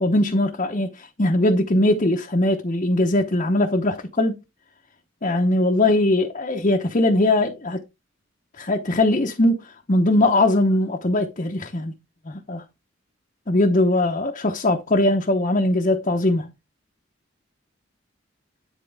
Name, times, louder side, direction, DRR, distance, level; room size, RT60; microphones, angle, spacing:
voice 1, 0.0-4.4 5.2-7.8 8.6-9.6 9.9-11.9 12.2-12.6 13.5-16.5, left 1 dB, 40° left, 0.9 m, -20 dB
10.0 x 4.5 x 3.5 m
head